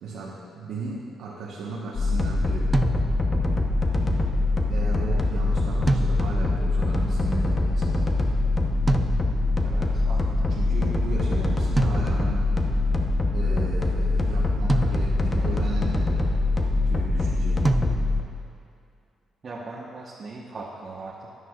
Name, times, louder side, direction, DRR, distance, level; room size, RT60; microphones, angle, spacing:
voice 1, 0.0-2.9 4.7-8.1 10.5-12.5 13.3-16.3 16.9-17.9, right 3 dB, 80° right, -6 dB, 1.1 m, -36 dB
sound 1, 2.0-18.2, left 2 dB, 25° left, 0.8 m, -23 dB
sound 2, 2.7-3.5 5.9-6.6 8.9-9.6 11.8-12.5 14.7-15.5 17.6-18.4, right 2 dB, 20° right, 0.4 m, -27 dB
voice 2, 9.6-10.5 19.4-21.3, right 3 dB, 45° right, -4 dB, 1.1 m, -39 dB
11.0 x 9.6 x 2.4 m, 2.5 s
cardioid pair, 90°, 0 cm